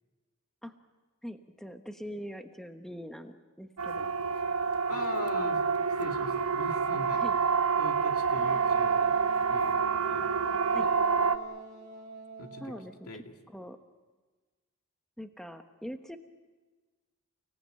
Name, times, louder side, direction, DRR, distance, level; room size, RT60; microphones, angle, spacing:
voice 1, 1.2-4.1 7.1-7.4 10.7-10.9 12.6-13.8 15.2-16.2, equal, ahead, 6 dB, 1.1 m, -43 dB
Siren, 3.8-11.4, right 5 dB, 75° right, 1.1 m, -28 dB
voice 2, 4.9-5.6 6.0-7.2 7.8-9.2 9.5-10.4 12.4-12.7 13.1-13.3, left 1 dB, 85° left, 4 dB, 2.4 m, -41 dB
Wind instrument woodwind instrument, 8.3-13.0, right 1 dB, 35° right, 2.3 m, -47 dB
30.0 x 18.0 x 9.0 m, 1.3 s
head